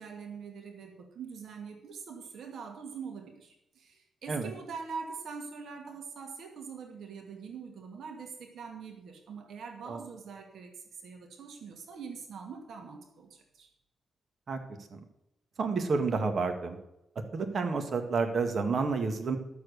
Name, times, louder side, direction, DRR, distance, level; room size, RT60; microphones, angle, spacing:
voice 1, 0.0-13.7, right 5 dB, 70° right, 3 dB, 2.1 m, -43 dB
voice 2, 15.6-16.8 17.3-19.4, right 4 dB, 45° right, 5 dB, 1.7 m, -30 dB
12.5 x 7.1 x 6.6 m, 0.84 s
cardioid pair, 130°, 0 cm